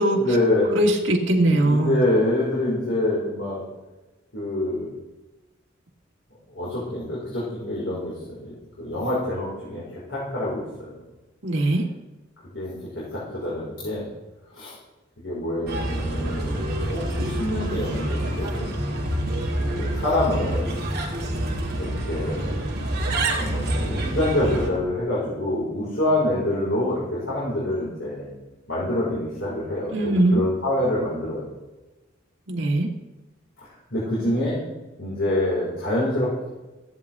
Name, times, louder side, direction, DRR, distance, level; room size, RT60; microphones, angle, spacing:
voice 1, 0.1-0.7 1.4-3.6 4.3-4.9 6.5-9.8 10.1-10.9 12.5-14.0 14.5-14.7 15.2-16.6 16.9-19.0 19.8-20.8 21.8-22.5 23.4-28.3 28.7-31.5 33.9-34.6 35.0-36.5, left 1 dB, 75° left, -8 dB, 4.9 m, -26 dB
voice 2, 0.7-2.1 11.4-11.8 29.9-30.4 32.5-32.9, right 1 dB, 75° right, 2 dB, 1.8 m, -20 dB
Bird, 15.7-24.7, right 1 dB, 55° right, 2.7 m, -27 dB
15.5 x 11.0 x 3.6 m, 1.1 s
head